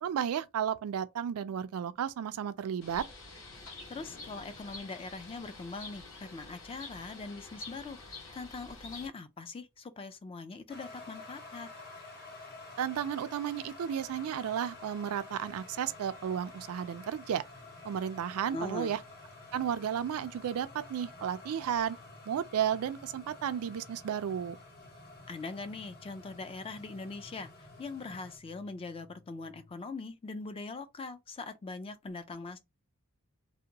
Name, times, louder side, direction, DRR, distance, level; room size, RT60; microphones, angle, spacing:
voice 1, 0.0-3.0 12.8-17.4 17.8-19.0 19.5-22.0 22.3-24.6, right 8 dB, 75° right, 0.3 m, -33 dB
Bird, 2.8-9.1, left 3 dB, 60° left, 1.3 m, -48 dB
voice 2, 3.9-11.7 18.5-18.9 25.3-32.6, left 3 dB, 25° left, 0.3 m, -42 dB
sound 1, 10.7-28.4, left 3 dB, 45° left, 1.4 m, -50 dB
sound 2, 17.5-29.7, left 3 dB, 80° left, 1.1 m, -64 dB
2.8 x 2.1 x 2.7 m
head